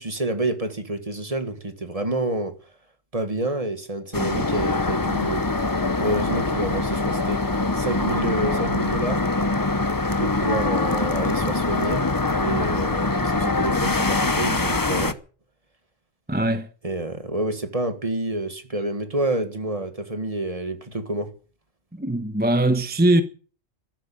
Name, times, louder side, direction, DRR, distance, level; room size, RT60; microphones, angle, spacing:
voice 1, 0.0-2.5 3.1-5.5 6.0-7.4 7.7-9.2 10.2-12.1 12.4-15.2 16.8-21.3, right 2 dB, 30° right, 1.8 m, -28 dB
sound 1, 4.1-15.1, left 3 dB, 20° left, 0.8 m, -23 dB
voice 2, 16.3-16.7 21.9-23.2, right 1 dB, 10° right, 1.0 m, -21 dB
13.0 x 12.5 x 8.8 m
omnidirectional pair, 1.3 m